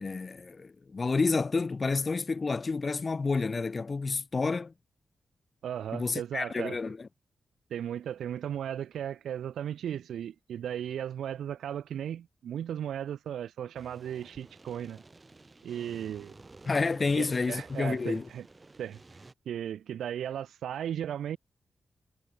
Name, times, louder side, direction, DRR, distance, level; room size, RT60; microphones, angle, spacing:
voice 1, 0.0-4.7 5.9-7.1 16.7-18.3, left 4 dB, 45° left, 0.4 m, -29 dB
voice 2, 5.6-6.8 7.7-15.0 15.6-16.3 17.2-18.5 18.8-19.0 19.5-21.4, right 9 dB, 90° right, 0.3 m, -36 dB
sound 1, 13.7-19.3, right 3 dB, 30° right, 1.3 m, -52 dB
cardioid pair, 55°, 0 cm